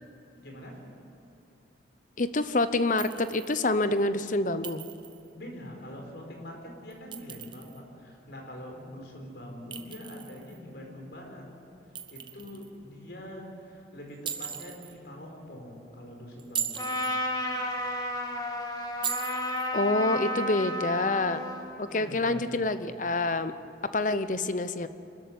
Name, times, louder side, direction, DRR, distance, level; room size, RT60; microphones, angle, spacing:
voice 1, 0.4-0.8 5.3-11.4 12.1-16.9 21.9-22.7, equal, 65° left, 1 dB, 4.8 m, -44 dB
voice 2, 2.2-4.8 19.7-21.4 21.8-23.5 23.9-24.9, left 2 dB, 45° left, 12 dB, 0.8 m, -27 dB
Chink clink, 3.0-3.6 4.6-5.3 6.9-7.8 9.7-10.6 12.0-12.7 14.3-14.9 16.4-17.2 19.0-19.7, right 8 dB, 25° right, 0.9 m, -38 dB
Trumpet, 16.7-21.7, left 1 dB, 20° left, 1.9 m, -32 dB
25.5 x 13.5 x 9.4 m, 2.7 s
head